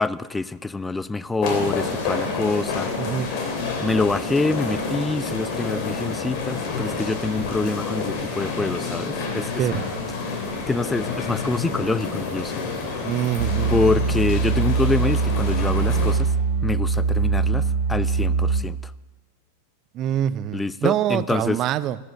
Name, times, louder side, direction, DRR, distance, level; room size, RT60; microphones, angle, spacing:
voice 1, 0.0-2.9 3.8-9.6 10.7-12.6 13.7-16.3 16.6-18.8 20.5-21.6, left 3 dB, 10° left, 0.4 m, -25 dB
sound 1, 1.4-16.1, left 4 dB, 45° left, 3.1 m, -29 dB
voice 2, 3.0-3.3 9.6-9.9 13.0-13.7 19.9-22.0, right 11 dB, 35° right, 0.6 m, -25 dB
sound 2, 13.4-18.6, right 4 dB, 60° right, 1.0 m, -22 dB
14.0 x 13.5 x 6.9 m
figure-of-eight pair, 90°, 0 cm